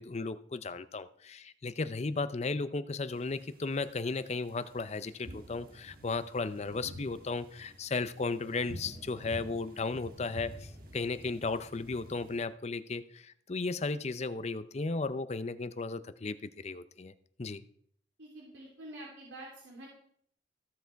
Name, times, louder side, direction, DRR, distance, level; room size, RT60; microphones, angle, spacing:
voice 1, 0.0-17.1 17.4-17.6, left 3 dB, 35° left, 13 dB, 0.6 m, -35 dB
sound 1, 3.1-12.4, equal, 50° right, 1.5 m, -49 dB
voice 2, 18.2-19.9, right 1 dB, 80° right, -4 dB, 3.2 m, -47 dB
15.5 x 7.0 x 4.6 m, 0.63 s
head